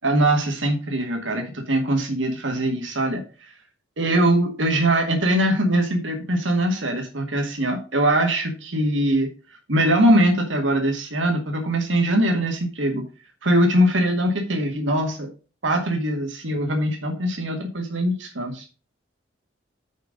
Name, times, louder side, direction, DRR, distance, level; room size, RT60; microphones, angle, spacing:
voice 1, 0.0-3.2 4.0-9.3 9.7-13.0 13.4-15.3 15.6-18.6, right 1 dB, 85° right, 2 dB, 1.8 m, -22 dB
6.4 x 5.3 x 6.4 m, 0.34 s
head